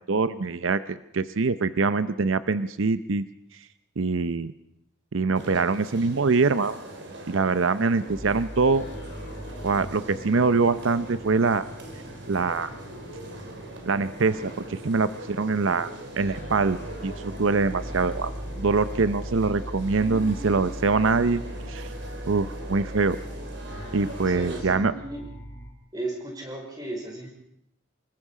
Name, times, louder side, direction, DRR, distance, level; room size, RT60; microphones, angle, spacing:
voice 1, 0.1-3.3 4.0-4.5 5.1-6.8 7.3-8.8 9.6-11.6 12.3-12.7 13.9-15.9 16.2-16.8 17.0-18.3 18.6-21.4 21.7-21.9 22.3-23.2 23.9-24.9, right 4 dB, 85° right, 13 dB, 0.7 m, -24 dB
sound 1, 5.3-24.6, right 1 dB, 65° right, 3.6 m, -41 dB
sound 2, 8.1-25.7, equal, 55° left, 5.6 m, -40 dB
voice 2, 24.3-25.3 25.9-27.3, right 2 dB, 20° right, 1 dB, 5.1 m, -35 dB
25.0 x 21.0 x 5.0 m, 0.76 s
head